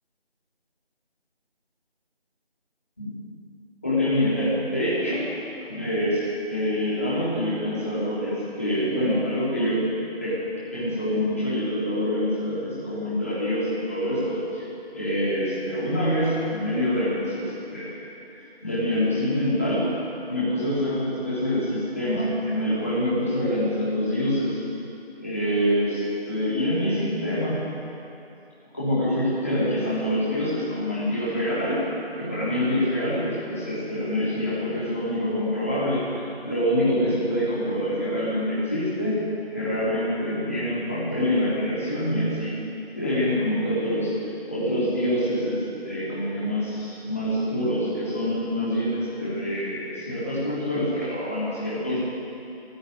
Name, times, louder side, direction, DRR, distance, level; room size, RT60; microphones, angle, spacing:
voice 1, 3.8-5.3 5.7-9.8 10.2-10.4 10.7-14.7 14.9-18.0 18.3-19.9 20.3-24.6 25.2-27.6 28.7-31.8 32.1-39.2 39.5-42.5 42.9-44.2 44.5-52.0, equal, 15° left, -9 dB, 3.4 m, -26 dB
22.0 x 15.5 x 9.4 m, 2.7 s
figure-of-eight pair, 180°, 32 cm